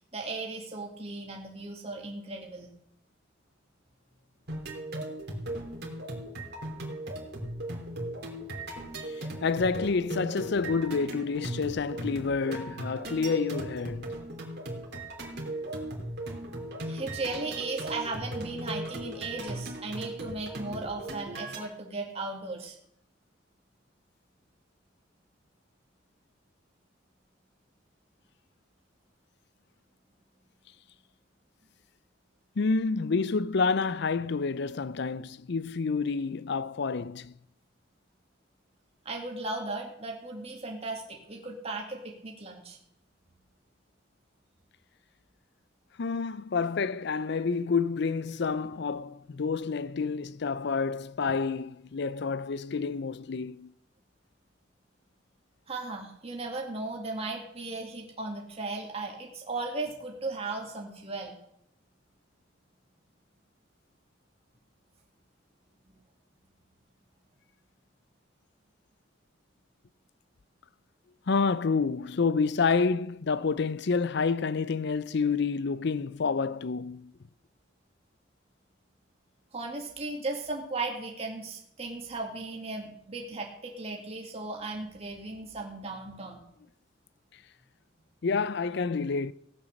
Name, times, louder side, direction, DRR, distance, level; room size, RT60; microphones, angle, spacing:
voice 1, 0.1-2.7 16.8-22.8 39.0-42.8 55.7-61.4 65.9-66.0 79.5-86.4, right 3 dB, 35° right, 2.2 m, -36 dB
sound 1, 4.5-21.6, right 1 dB, 60° right, 3.2 m, -38 dB
voice 2, 8.9-14.1 32.6-37.3 46.0-53.7 71.3-77.1 88.2-89.3, left 4 dB, 65° left, 0.5 m, -29 dB
16.0 x 9.0 x 6.5 m
head